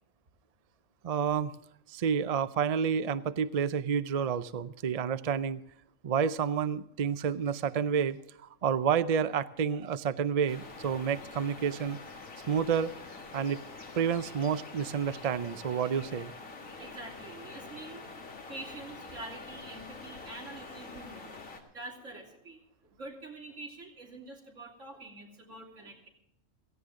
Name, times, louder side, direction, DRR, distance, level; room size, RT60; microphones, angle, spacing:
voice 1, 1.0-1.5 1.9-5.6 6.0-8.2 8.4-12.0 12.5-13.0 13.3-13.6 14.0-16.3, right 7 dB, 50° right, 13 dB, 0.4 m, -29 dB
sound 1, 10.5-21.6, left 3 dB, 80° left, 2.2 m, -46 dB
voice 2, 16.8-26.1, right 2 dB, 70° right, -1 dB, 3.4 m, -46 dB
16.5 x 15.5 x 3.7 m, 0.77 s
omnidirectional pair, 1.4 m